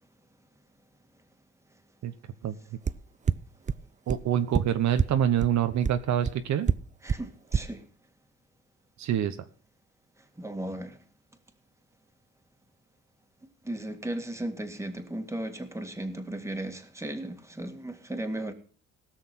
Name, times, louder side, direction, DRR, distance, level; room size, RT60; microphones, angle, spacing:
sound 1, 2.9-3.0 3.3-3.4 3.7-3.8 4.1-4.2 4.5-4.6 5.0-5.1 5.4-5.5 5.8-5.9 6.2-6.3 6.7-6.8 7.1-7.2 7.5-7.6, right 6 dB, 25° right, 0.5 m, -23 dB
voice 1, 4.1-6.7 9.0-9.4, right 10 dB, 65° right, 1.0 m, -26 dB
voice 2, 7.0-7.8 10.4-11.0 13.6-18.5, right 1 dB, 10° right, 2.0 m, -36 dB
17.5 x 6.5 x 6.0 m
cardioid pair, 90°, 30 cm